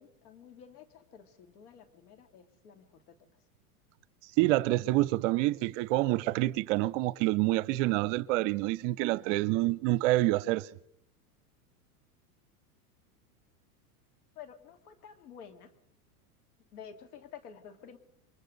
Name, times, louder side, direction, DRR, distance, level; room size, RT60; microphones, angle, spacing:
voice 1, 0.0-3.2 14.3-15.7 16.7-18.0, left 8 dB, 75° left, 3.0 m, -51 dB
voice 2, 4.4-10.7, right 17 dB, 50° right, 0.8 m, -27 dB
29.5 x 24.0 x 4.0 m
hypercardioid pair, 110°, 46 cm